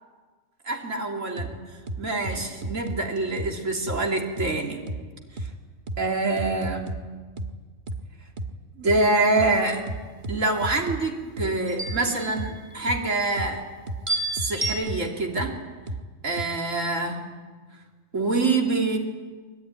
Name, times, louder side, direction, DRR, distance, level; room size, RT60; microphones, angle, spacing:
voice 1, 0.7-1.7 2.0-4.8 5.4-5.5 6.0-7.0 8.8-9.9 10.3-13.6 14.3-15.6 16.2-17.3 18.1-19.0, right 2 dB, 80° right, 1 dB, 3.5 m, -25 dB
sound 1, 1.4-1.5 1.9-3.0 3.4-3.5 3.9-4.0 4.4-4.5 4.9-5.0 5.4-5.5 5.9-6.0 6.4-7.0 7.4-7.5 7.9-8.0 8.4-8.5 8.9-9.0 9.4-9.5 9.9-11.0 11.4-11.5 11.9-12.0 12.4-12.5 12.9-13.0 13.4-13.5 13.9-14.0 14.4-15.0 15.4-15.5 15.9-16.0 16.4-16.5, right 2 dB, 40° right, 1.5 m, -32 dB
sound 2, 9.0-9.5 11.7-13.1 14.1-14.7, right 2 dB, 25° right, 5.8 m, -32 dB
24.5 x 23.5 x 10.0 m, 1.4 s
omnidirectional pair, 1.3 m